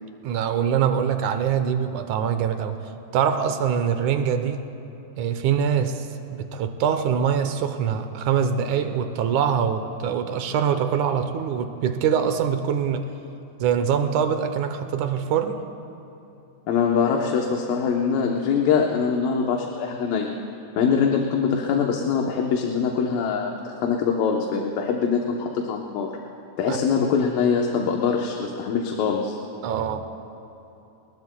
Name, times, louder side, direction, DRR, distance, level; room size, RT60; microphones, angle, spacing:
voice 1, 0.2-2.8 3.1-4.7 5.2-6.1 6.3-13.1 13.6-15.6 26.7-26.8 29.6-30.0, right 7 dB, 75° right, 8 dB, 2.0 m, -24 dB
voice 2, 16.7-20.3 20.8-26.1 26.6-29.4, left 6 dB, 85° left, 0 dB, 2.7 m, -23 dB
30.0 x 20.0 x 2.3 m, 2.9 s
omnidirectional pair, 3.9 m